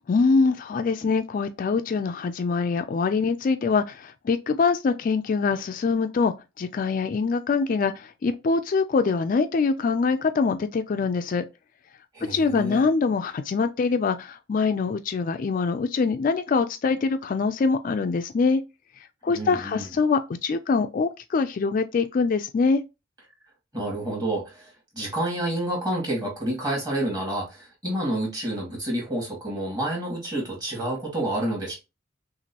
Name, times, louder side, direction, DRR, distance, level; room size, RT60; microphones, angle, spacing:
voice 1, 0.1-11.5 12.2-18.6 19.2-22.8, left 4 dB, 45° left, 0.3 m, -24 dB
voice 2, 12.1-12.8 19.3-19.9 23.7-31.7, right 1 dB, 20° right, 2.2 m, -29 dB
5.9 x 2.5 x 2.8 m
head